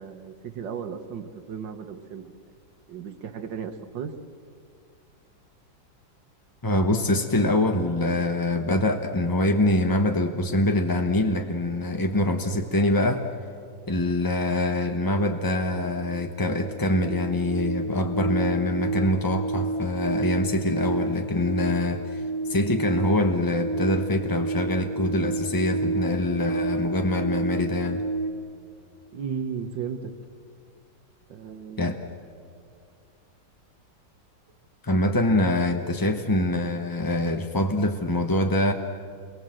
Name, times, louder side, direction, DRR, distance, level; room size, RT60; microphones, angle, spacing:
voice 1, 0.0-2.4 2.9-4.1 29.1-30.1 31.3-31.8, right 7 dB, 75° right, 6 dB, 1.8 m, -35 dB
voice 2, 6.6-13.3 13.9-28.0 31.8-32.0 34.8-38.7, left 1 dB, 20° left, 5 dB, 0.6 m, -24 dB
sound 1, 15.1-28.3, right 2 dB, 60° left, 3.3 m, -30 dB
28.5 x 22.5 x 7.7 m, 2.3 s
omnidirectional pair, 2.0 m